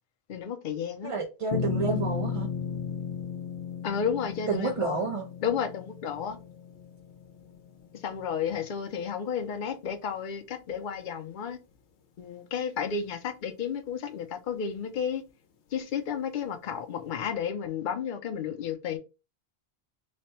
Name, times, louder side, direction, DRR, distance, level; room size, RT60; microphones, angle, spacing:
voice 1, 0.3-1.1 3.8-5.0 5.4-6.4 8.0-11.6 12.2-15.2 15.7-19.0, left 7 dB, 55° left, 0.7 m, -32 dB
voice 2, 1.0-2.5 4.5-5.3, right 4 dB, 50° right, 0.4 m, -30 dB
sound 1, 1.5-8.1, left 6 dB, 90° left, 1.0 m, -34 dB
3.3 x 2.1 x 4.2 m
omnidirectional pair, 1.1 m